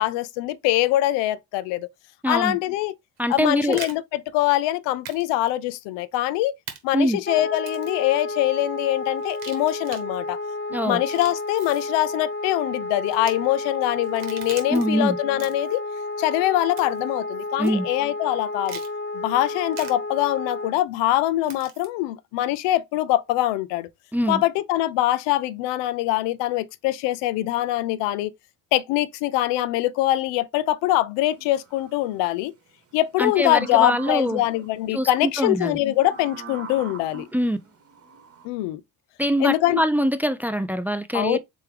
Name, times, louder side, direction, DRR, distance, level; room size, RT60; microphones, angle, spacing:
voice 1, 0.0-1.9 2.3-2.9 3.3-6.5 6.8-10.4 10.7-15.8 16.2-18.8 19.1-23.9 24.3-28.3 28.7-32.5 32.9-37.3 38.4-38.8 39.4-39.8 41.1-41.4, left 15 dB, 70° left, 0.5 m, -23 dB
voice 2, 2.2-2.6 3.2-3.8 6.9-7.2 10.7-11.0 14.7-15.2 17.6-17.9 24.1-24.4 33.2-34.4 34.9-35.8 37.3-37.6 39.2-41.4, equal, 5° right, 0.3 m, -23 dB
sound 1, 3.2-3.9 5.0-5.2 5.5-5.6 6.7-6.8 7.6-8.0 9.2-10.0 10.9-11.9 13.1-13.3 14.0-14.8 15.3-15.8 16.8-17.1 17.6-17.7 18.6-18.9 19.7-19.9 21.4-21.9, right 8 dB, 80° right, 1.2 m, -40 dB
Wind instrument woodwind instrument, 7.3-20.7, left 2 dB, 25° left, 1.0 m, -31 dB
sound 2, 31.3-32.1 33.2-34.7 36.0-38.5, right 4 dB, 35° right, 1.1 m, -42 dB
3.4 x 3.2 x 3.3 m
hypercardioid pair, 60°, 44 cm